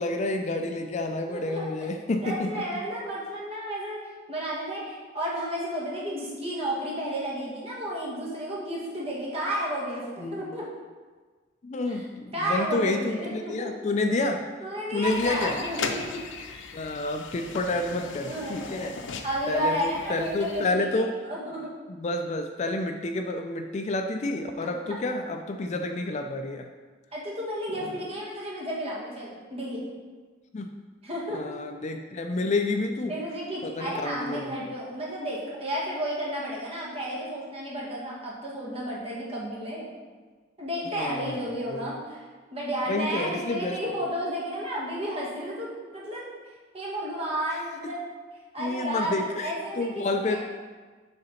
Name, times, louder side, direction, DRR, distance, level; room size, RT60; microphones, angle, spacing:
voice 1, 0.0-2.8 10.2-10.6 11.6-14.4 14.9-15.6 16.7-19.0 19.5-21.1 21.9-26.7 27.8-28.0 30.5-30.7 31.3-33.1 33.6-34.5 40.9-41.4 41.7-41.9 42.9-43.8 47.8-47.9 48.6-50.4, left 2 dB, 40° left, 5 dB, 0.4 m, -29 dB
voice 2, 1.3-1.9 2.2-4.0 4.3-10.7 11.9-12.0 12.3-13.7 14.1-14.2 14.6-16.2 18.3-18.8 19.2-21.7 24.6-25.0 27.1-29.8 31.0-31.4 33.1-39.9 40.6-42.2 42.5-46.3 46.7-48.1 48.5-50.4, equal, 30° right, -5 dB, 1.8 m, -32 dB
sound 1, 15.0-20.8, left 4 dB, 90° left, 0.6 m, -38 dB
6.9 x 3.8 x 5.6 m, 1.4 s
head